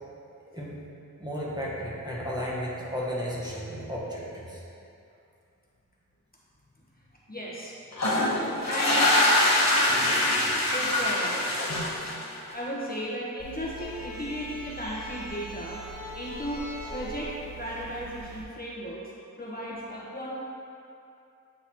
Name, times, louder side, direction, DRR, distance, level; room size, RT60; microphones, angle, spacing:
voice 1, 1.2-4.6, equal, 15° right, -7 dB, 1.2 m, -33 dB
voice 2, 7.3-7.7 8.3-9.1 10.7-11.3 12.5-15.8 16.1-19.0 19.4-20.4, equal, 30° left, -6 dB, 1.2 m, -35 dB
sound 1, 7.9-12.5, left 1 dB, 55° left, 1.2 m, -24 dB
sound 2, 13.4-18.4, right 1 dB, 90° left, 1.2 m, -41 dB
8.5 x 3.9 x 3.0 m, 2.6 s
wide cardioid pair, 50°, 32 cm